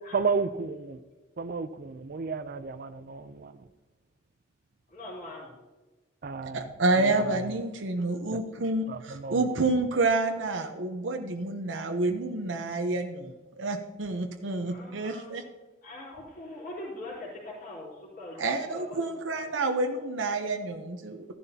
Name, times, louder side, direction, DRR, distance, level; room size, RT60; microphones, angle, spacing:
voice 1, 0.1-1.0 1.4-3.7 6.2-7.4 8.3-8.4 8.9-9.4, right 4 dB, 50° right, 13 dB, 0.5 m, -33 dB
voice 2, 4.9-5.6 14.6-15.3 15.8-19.0 19.4-19.5, left 1 dB, 50° left, -6 dB, 3.3 m, -42 dB
voice 3, 6.5-15.4 18.4-21.3, right 2 dB, 90° right, 4 dB, 0.8 m, -29 dB
14.0 x 11.0 x 2.8 m, 1.2 s
head